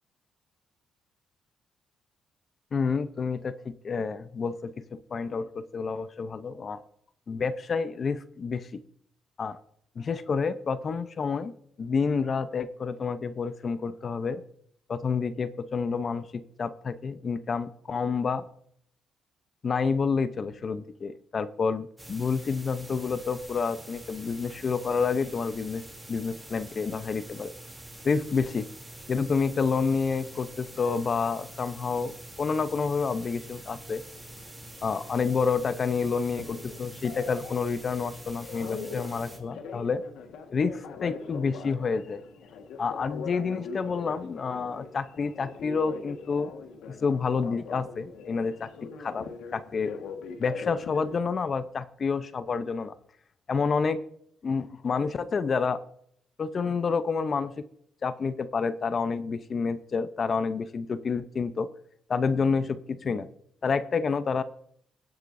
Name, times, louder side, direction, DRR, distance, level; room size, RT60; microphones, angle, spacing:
voice 1, 2.7-4.7 5.1-6.8 7.3-8.8 9.4-9.6 10.0-11.5 11.8-14.4 14.9-18.4 19.6-25.8 26.1-27.5 28.0-28.7 29.1-32.1 32.4-34.0 34.8-40.0 40.5-42.2 42.8-46.5 46.9-48.7 49.0-49.3 49.5-49.9 50.4-52.9 53.5-54.0 54.4-55.8 56.4-57.5 58.0-61.7 62.1-63.3 63.6-64.4, left 5 dB, 45° left, 12 dB, 0.7 m, -29 dB
sound 1, 22.0-39.4, right 1 dB, 15° right, 3.0 m, -46 dB
Telephone, 34.1-51.2, left 5 dB, 85° left, 1.6 m, -43 dB
23.5 x 7.9 x 2.7 m, 0.69 s
cardioid pair, 90°, 0 cm